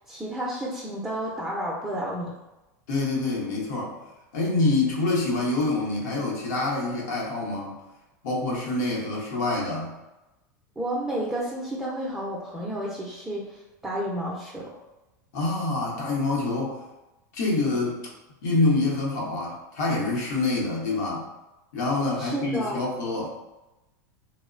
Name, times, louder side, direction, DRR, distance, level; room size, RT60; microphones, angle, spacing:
voice 1, 0.1-2.3 10.8-13.6 13.8-14.8 22.2-22.8, right 1 dB, 5° right, -5 dB, 0.5 m, -31 dB
voice 2, 2.9-3.9 4.3-7.7 8.2-9.9 15.3-16.8 17.3-18.0 18.4-21.3 21.7-23.3, left 2 dB, 70° left, -3 dB, 0.9 m, -26 dB
2.9 x 2.0 x 2.4 m, 1.0 s
hypercardioid pair, 110°, 10 cm